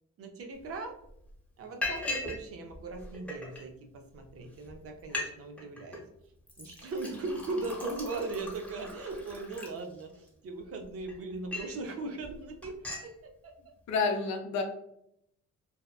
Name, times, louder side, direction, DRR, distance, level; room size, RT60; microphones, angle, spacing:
voice 1, 0.2-1.0 1.6-6.0 6.6-13.1 13.4-13.5, right 3 dB, 50° right, 3 dB, 0.5 m, -39 dB
Liquid, 0.6-0.7 1.1-1.3 1.8-2.4 2.7-3.6 4.3-4.4 4.7-4.8 5.0-5.3 5.6-6.0 6.5-10.3 10.8-11.8 12.2-12.4 12.6-13.1, left 2 dB, 5° left, 0.8 m, -38 dB
voice 2, 13.9-14.6, left 4 dB, 65° left, 3 dB, 0.5 m, -29 dB
2.8 x 2.1 x 2.2 m, 0.76 s
cardioid pair, 90°, 30 cm